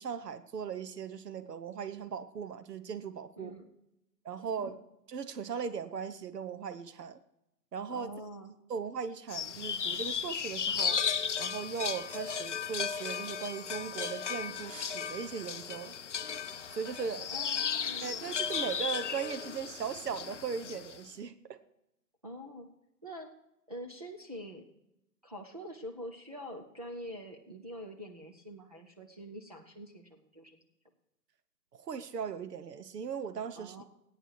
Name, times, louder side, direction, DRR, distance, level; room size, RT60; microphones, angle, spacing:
voice 1, 0.0-3.5 4.2-4.7 5.1-7.2 7.7-8.1 8.7-11.0 11.4-16.0 16.7-17.3 18.0-21.6 31.8-33.8, right 6 dB, 75° right, 12 dB, 1.1 m, -38 dB
voice 2, 3.4-3.7 4.4-4.8 7.9-8.5 17.3-18.4 22.2-22.7 23.0-23.3 23.7-24.6 25.2-30.6 33.6-33.8, equal, 25° right, -1 dB, 0.6 m, -45 dB
sound 1, 9.3-21.0, left 7 dB, 50° left, 0.6 m, -35 dB
19.0 x 9.0 x 4.7 m, 0.87 s
hypercardioid pair, 165°, 48 cm